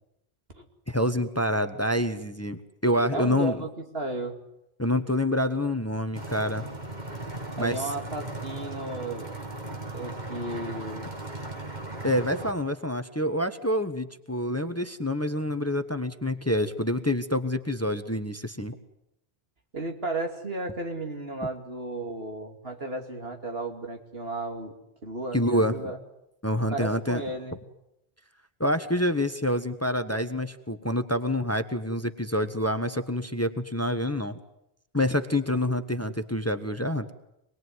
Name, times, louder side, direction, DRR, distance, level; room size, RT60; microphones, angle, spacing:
voice 1, 0.9-3.6 4.8-6.7 7.6-7.9 12.0-18.8 25.3-25.7 26.4-27.2 28.6-34.3 34.9-37.1, left 1 dB, 15° left, 9 dB, 1.2 m, -27 dB
voice 2, 3.1-4.4 7.6-9.4 9.9-11.1 19.7-24.8 25.0-26.0 26.7-27.6 35.5-35.7, right 2 dB, 70° right, 4 dB, 3.1 m, -34 dB
sound 1, 6.1-12.5, right 2 dB, 45° right, 2.7 m, -37 dB
26.5 x 20.5 x 9.6 m, 0.83 s
omnidirectional pair, 1.0 m